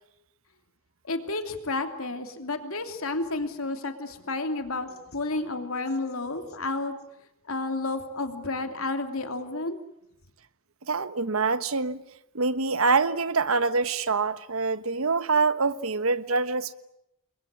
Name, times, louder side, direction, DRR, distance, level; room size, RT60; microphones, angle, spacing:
voice 1, 1.0-6.9 7.5-9.8, left 2 dB, 85° left, 3.0 m, -31 dB
voice 2, 10.9-12.0 12.3-16.7, right 4 dB, 85° right, 1.2 m, -25 dB
28.5 x 22.5 x 8.4 m
head